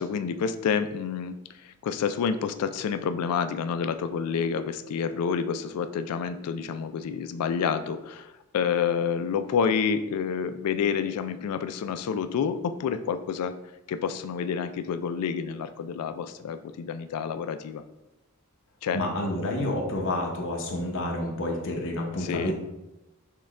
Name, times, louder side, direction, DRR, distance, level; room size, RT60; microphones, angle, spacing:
voice 1, 0.0-13.5 13.9-17.8 18.8-19.0 22.2-22.5, left 6 dB, 80° left, 10 dB, 0.3 m, -29 dB
voice 2, 18.9-22.5, left 1 dB, 60° left, 0 dB, 0.9 m, -29 dB
6.4 x 2.2 x 3.5 m, 0.98 s
head